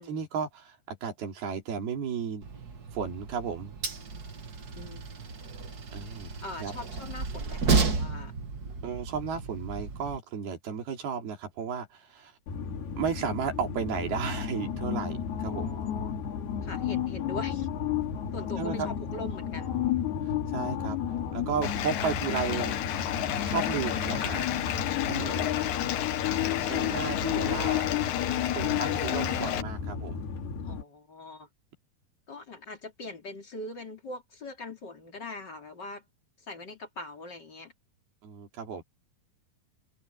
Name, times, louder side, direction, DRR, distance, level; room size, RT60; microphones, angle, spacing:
voice 1, 0.0-2.5 2.9-3.8 5.9-6.3 6.6-6.7 8.8-12.3 13.0-15.7 18.6-18.9 20.5-21.0 21.3-22.7 23.5-24.5 25.1-25.5 26.7-27.9 28.6-30.2 38.2-38.8, right 6 dB, 80° right, 5.2 m, -34 dB
Train, 2.4-10.2, right 4 dB, 45° right, 1.3 m, -32 dB
voice 2, 6.4-8.3 15.4-16.1 16.6-17.7 18.3-19.7 26.4-26.9 30.6-31.5 32.3-36.0 36.4-37.7, left 2 dB, 30° left, 3.0 m, -42 dB
sound 1, 12.5-30.8, left 9 dB, 90° left, 5.0 m, -32 dB
Bathtub (filling or washing), 21.6-29.6, left 12 dB, 70° left, 2.8 m, -32 dB
omnidirectional pair, 4.4 m